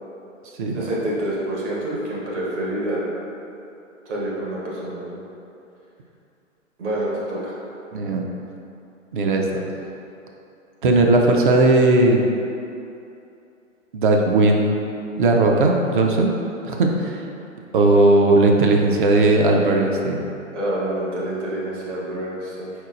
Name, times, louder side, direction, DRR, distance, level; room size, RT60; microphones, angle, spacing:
voice 1, 0.7-3.0 4.0-5.2 6.8-7.6 20.5-22.7, right 1 dB, 60° right, -5 dB, 1.3 m, -27 dB
voice 2, 7.9-8.2 9.1-9.4 10.8-12.2 13.9-14.8 15.2-16.3 16.6-17.2 17.7-20.2, right 2 dB, 40° right, 1 dB, 0.4 m, -17 dB
4.4 x 3.9 x 2.5 m, 2.7 s
figure-of-eight pair, 120°, 39 cm